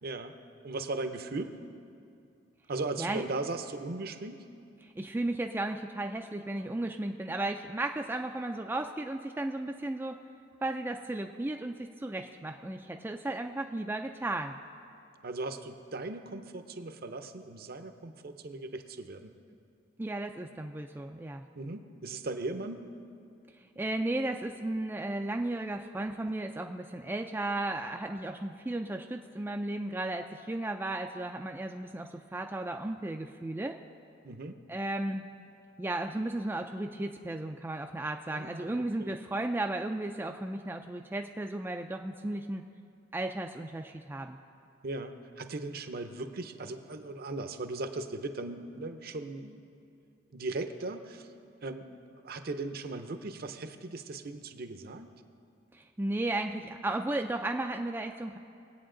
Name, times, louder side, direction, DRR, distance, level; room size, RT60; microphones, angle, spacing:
voice 1, 0.0-0.4 0.6-1.5 2.7-4.4 15.2-19.3 21.5-22.8 34.2-34.6 38.3-39.1 44.8-49.7 50.3-51.3 51.6-52.0 52.2-55.1, right 2 dB, 55° right, 8 dB, 0.7 m, -38 dB
voice 2, 4.8-10.2 10.6-14.5 20.0-21.4 23.8-33.8 34.7-35.2 35.8-42.6 43.1-44.4 55.7-58.4, right 2 dB, 10° right, 4 dB, 0.3 m, -34 dB
20.5 x 8.6 x 3.8 m, 2.5 s
head